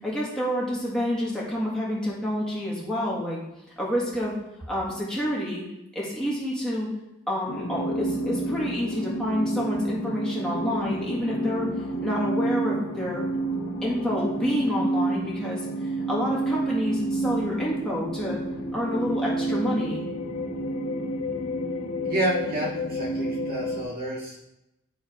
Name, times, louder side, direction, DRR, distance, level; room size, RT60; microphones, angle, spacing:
voice 1, 0.0-3.4 3.8-4.4 4.7-5.6 6.0-6.9 7.3-11.7 12.0-13.2 13.8-15.7 16.1-18.4 18.7-20.0, equal, 5° left, -6 dB, 1.8 m, -28 dB
sound 1, 7.5-23.8, right 1 dB, 75° left, 1.1 m, -29 dB
voice 2, 22.0-24.5, right 1 dB, 45° right, -4 dB, 2.0 m, -29 dB
9.7 x 3.9 x 5.0 m, 0.90 s
head